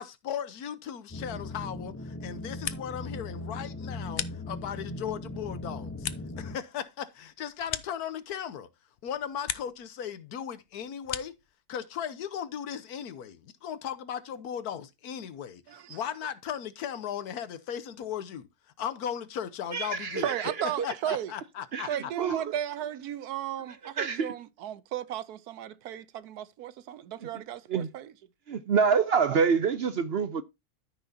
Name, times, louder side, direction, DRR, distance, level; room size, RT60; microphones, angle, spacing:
voice 1, 0.0-6.1 6.4-8.7 9.0-11.3 11.7-18.5 18.8-20.3 20.8-21.9, left 9 dB, 80° left, 1.4 m, -37 dB
sound 1, 1.1-6.6, left 2 dB, 15° left, 0.5 m, -39 dB
sound 2, 2.3-3.1 3.4-4.9 5.3-8.6 8.9-9.9 10.2-11.5, left 10 dB, 60° left, 0.9 m, -40 dB
voice 2, 15.7-16.3 20.2-21.3 21.9-28.1, right 11 dB, 85° right, 1.3 m, -35 dB
voice 3, 19.7-20.9 21.7-21.9 22.2-22.4 23.8-24.3 27.3-27.4 27.7-27.9 28.5-30.4, right 6 dB, 55° right, 0.7 m, -27 dB
13.5 x 6.0 x 2.7 m
omnidirectional pair, 1.6 m